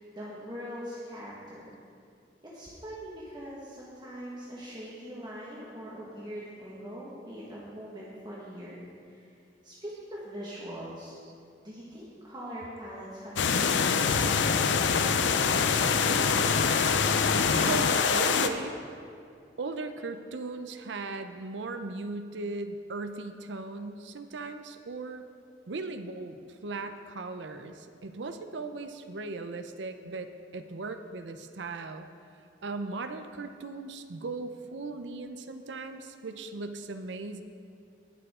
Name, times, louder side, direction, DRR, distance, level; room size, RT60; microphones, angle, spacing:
voice 1, 0.0-1.7 2.4-9.4 9.6-11.2 11.6-16.9, equal, 25° right, -7 dB, 1.6 m, -42 dB
sound 1, 13.4-18.5, left 6 dB, 90° left, 0.6 m, -24 dB
voice 2, 17.5-18.8 19.6-25.3 25.7-32.1 32.6-37.4, right 3 dB, 85° right, 8 dB, 0.7 m, -38 dB
19.0 x 7.0 x 3.7 m, 2.4 s
head